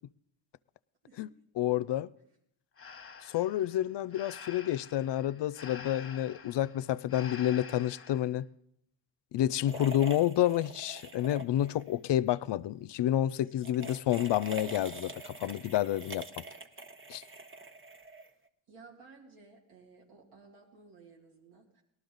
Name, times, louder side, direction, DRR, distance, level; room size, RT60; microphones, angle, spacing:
voice 1, 1.6-2.1 3.2-8.5 9.3-16.4 17.1-17.2, left 12 dB, 60° left, 0.5 m, -29 dB
Breathing, 2.8-8.3, left 6 dB, 25° left, 1.1 m, -48 dB
sound 1, 9.7-11.9 12.2-12.4 13.5-18.5, right 3 dB, 25° right, 1.0 m, -45 dB
voice 2, 18.7-21.8, right 4 dB, 80° right, 2.8 m, -56 dB
18.5 x 12.5 x 3.9 m
supercardioid pair, 55°, 50 cm